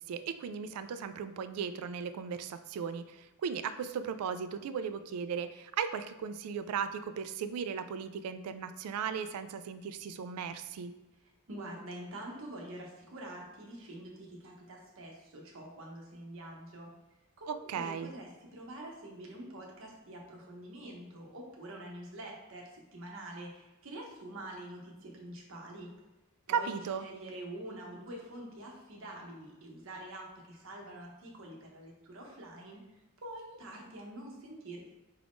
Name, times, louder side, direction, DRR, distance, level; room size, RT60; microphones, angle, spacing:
voice 1, 0.0-10.9 17.5-18.1 26.5-27.0, right 7 dB, 90° right, 11 dB, 0.3 m, -36 dB
voice 2, 11.5-16.9 17.4-25.9 26.5-32.8 33.2-34.9, right 1 dB, 60° right, -1 dB, 0.8 m, -46 dB
4.6 x 2.5 x 3.5 m, 1.0 s
head